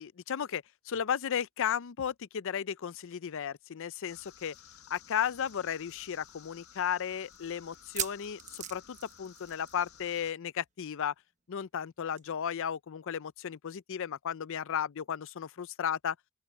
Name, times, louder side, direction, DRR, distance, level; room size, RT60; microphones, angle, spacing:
voice 1, 0.0-4.5 4.9-11.1 11.5-16.2, left 8 dB, 65° left, 0.5 m, -34 dB
sound 1, 4.1-10.3, left 8 dB, 90° left, 1.7 m, -55 dB
sound 2, 5.1-5.2 5.5-5.6 6.2-6.3 7.7-9.9 10.1-10.4 10.6-10.7 12.2-12.3, right 10 dB, 35° right, 1.0 m, -39 dB
open air
head